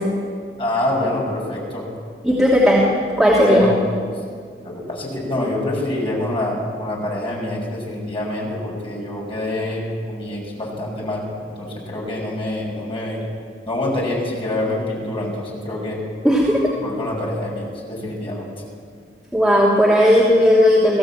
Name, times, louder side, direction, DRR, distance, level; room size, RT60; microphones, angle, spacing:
voice 1, 0.6-1.9 3.4-3.8 4.6-13.2 13.6-16.0 16.8-18.5, left 1 dB, 30° left, -2 dB, 6.4 m, -26 dB
voice 2, 2.2-2.8 3.2-3.7 16.2-16.6 19.3-21.0, equal, ahead, -6 dB, 2.8 m, -15 dB
22.0 x 15.5 x 8.6 m, 2.1 s
head